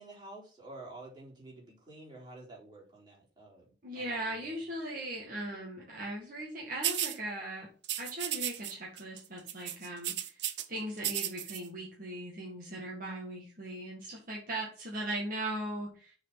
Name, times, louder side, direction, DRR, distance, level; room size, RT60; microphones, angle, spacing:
voice 1, 0.0-4.6, right 2 dB, 25° right, -5 dB, 4.1 m, -50 dB
voice 2, 3.8-7.7 8.0-10.4 10.7-16.1, right 1 dB, 45° right, -3 dB, 2.0 m, -39 dB
sound 1, 6.8-7.2 7.8-8.7 9.0-9.2 9.5-10.6 11.0-11.6, right 12 dB, 65° right, 0.9 m, -34 dB
6.6 x 5.0 x 5.9 m, 0.38 s
head